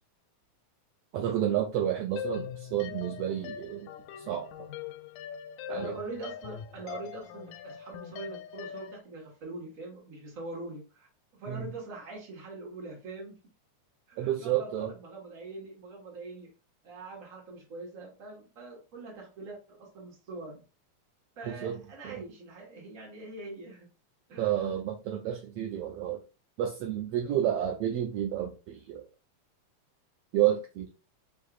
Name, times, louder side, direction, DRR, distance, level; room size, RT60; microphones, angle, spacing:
voice 1, 1.1-3.9 4.3-4.5 5.7-5.9 11.5-11.7 14.2-14.9 21.5-21.8 22.0-22.2 24.4-26.2 26.6-29.0 30.3-30.9, right 11 dB, 80° right, 1 dB, 1.4 m, -30 dB
sound 1, 2.2-9.0, left 10 dB, 85° left, 1.9 m, -42 dB
voice 2, 5.7-13.4 14.1-16.5 16.8-20.6 21.4-23.9 24.3-24.7 27.2-27.6, right 2 dB, 35° right, -2 dB, 1.4 m, -43 dB
6.4 x 2.7 x 2.4 m, 0.31 s
omnidirectional pair, 3.5 m